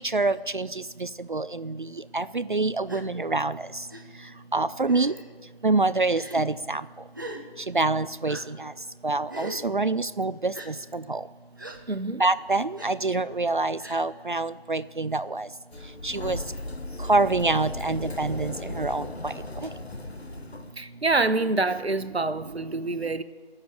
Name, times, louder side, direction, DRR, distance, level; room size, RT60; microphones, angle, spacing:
voice 1, 0.1-0.7 1.0-1.7 2.1-3.5 4.5-5.1 5.6-6.8 7.7-8.7 9.0-10.7 11.1-11.2 12.2-15.5 16.0-16.4 17.1-19.3, right 3 dB, 55° right, 16 dB, 0.4 m, -26 dB
Gasp, 2.9-3.1 3.9-4.0 4.9-5.3 6.1-6.4 7.1-7.4 8.3-8.4 9.3-9.6 10.5-10.7 11.6-11.8 12.8-12.9 13.8-14.0, right 1 dB, 20° right, 0.9 m, -39 dB
voice 2, 11.9-12.2 20.8-23.2, right 3 dB, 85° right, 12 dB, 1.1 m, -26 dB
Sliding door, 15.7-20.7, left 2 dB, 85° left, 1.3 m, -37 dB
18.5 x 7.2 x 9.3 m, 1.5 s
figure-of-eight pair, 165°, 31 cm